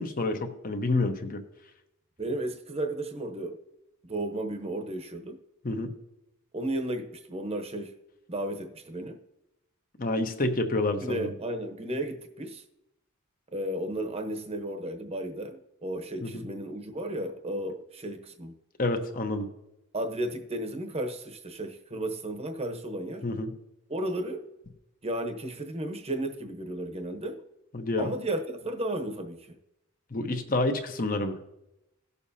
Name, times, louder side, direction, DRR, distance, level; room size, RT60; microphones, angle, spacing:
voice 1, 0.0-1.4 5.6-5.9 10.0-11.3 16.2-16.4 18.8-19.5 23.2-23.5 27.7-28.1 30.1-31.4, left 2 dB, 40° left, 1.0 m, -28 dB
voice 2, 2.2-3.6 4.0-5.4 6.5-7.9 8.3-9.2 11.0-12.6 13.5-18.5 19.9-23.3 23.9-24.5 25.0-27.4 28.0-29.6, right 1 dB, 30° right, 0.9 m, -34 dB
17.5 x 6.9 x 2.8 m
head